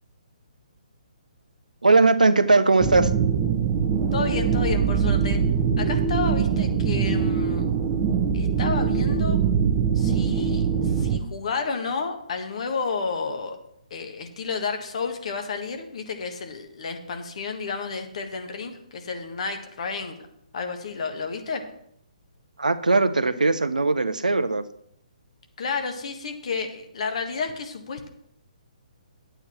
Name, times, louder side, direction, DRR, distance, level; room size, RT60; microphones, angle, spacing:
voice 1, 1.8-3.1 22.6-24.6, right 3 dB, 80° right, 12 dB, 0.8 m, -19 dB
sound 1, 2.8-11.2, right 6 dB, 25° right, 0.9 m, -23 dB
voice 2, 4.1-5.4 5.8-7.7 8.3-9.4 9.9-13.6 13.9-20.1 20.5-21.6 25.6-28.1, left 4 dB, 50° left, 5 dB, 1.5 m, -31 dB
10.0 x 8.8 x 4.5 m, 0.73 s
figure-of-eight pair, 135°, 4 cm